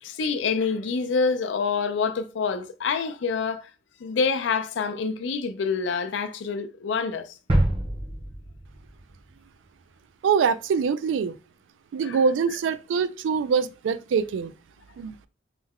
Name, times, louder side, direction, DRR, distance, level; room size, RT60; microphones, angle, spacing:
voice 1, 0.0-3.7 4.0-7.3 12.0-12.2, left 5 dB, 80° left, 0.4 m, -27 dB
sound 1, 7.5-9.4 9.8-9.9, right 1 dB, 30° right, 0.6 m, -26 dB
voice 2, 10.2-11.4 11.9-14.5 15.0-15.1, right 6 dB, 85° right, 0.3 m, -24 dB
3.3 x 2.1 x 3.5 m
head